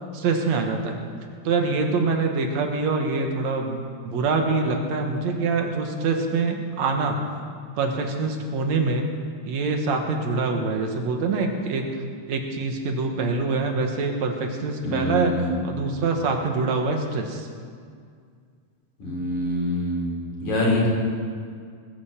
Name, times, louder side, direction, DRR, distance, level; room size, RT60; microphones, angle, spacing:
voice 1, 0.1-1.0 1.4-7.2 7.8-9.1 9.4-11.8 12.3-15.3 15.6-17.5, right 4 dB, 70° right, 3 dB, 2.5 m, -25 dB
voice 2, 14.8-15.6 19.0-20.9, left 1 dB, 75° left, -3 dB, 5.3 m, -25 dB
21.0 x 8.4 x 7.3 m, 2.1 s
omnidirectional pair, 3.4 m